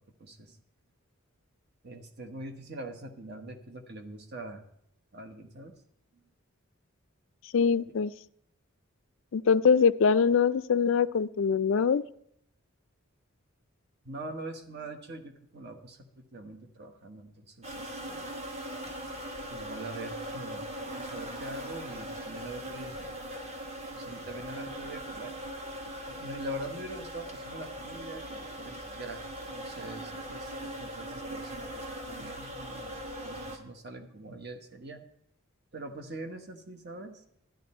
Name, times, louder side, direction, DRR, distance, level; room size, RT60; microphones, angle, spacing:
voice 1, 0.2-0.5 1.8-4.6 5.1-5.7 14.0-16.0 16.3-18.3 19.5-20.6 20.9-23.0 23.9-25.3 26.1-29.2 29.5-33.0 33.2-35.0 35.7-37.1, right 1 dB, 50° right, 5 dB, 1.2 m, -43 dB
voice 2, 7.5-8.1 9.3-12.0, left 6 dB, 60° left, 16 dB, 0.4 m, -23 dB
sound 1, 17.6-33.6, right 1 dB, 30° right, 1.3 m, -40 dB
12.0 x 10.5 x 4.3 m, 0.70 s
head